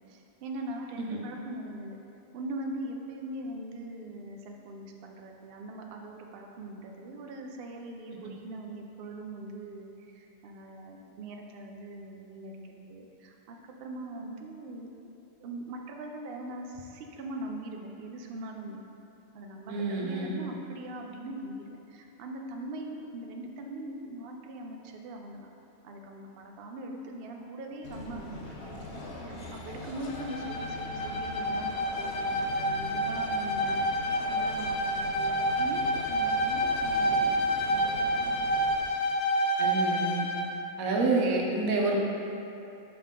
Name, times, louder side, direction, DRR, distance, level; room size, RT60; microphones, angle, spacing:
voice 1, 0.1-2.0 2.3-14.9 15.4-18.8 19.3-25.5 25.8-33.9 34.3-37.8, right 1 dB, 60° right, 2 dB, 0.7 m, -41 dB
voice 2, 19.7-20.4 39.6-40.3 40.8-42.0, right 3 dB, 85° right, -1 dB, 1.3 m, -28 dB
sound 1, 27.8-38.8, left 2 dB, 55° left, 1.0 m, -42 dB
Bowed string instrument, 30.1-40.5, equal, 90° left, 1.1 m, -29 dB
5.7 x 5.4 x 3.6 m, 2.8 s
omnidirectional pair, 1.4 m